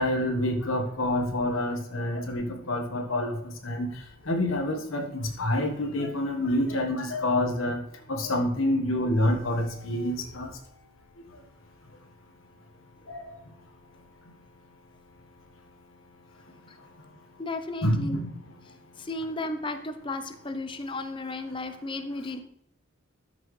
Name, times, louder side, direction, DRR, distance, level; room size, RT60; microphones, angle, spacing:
voice 1, 0.0-3.4 3.6-3.9 4.2-7.8 8.1-10.5 13.1-13.3 17.8-18.3, left 1 dB, 75° left, 3 dB, 1.4 m, -27 dB
voice 2, 17.4-18.2 19.0-22.4, left 2 dB, 25° left, 8 dB, 0.7 m, -34 dB
13.0 x 6.0 x 3.2 m, 0.69 s
head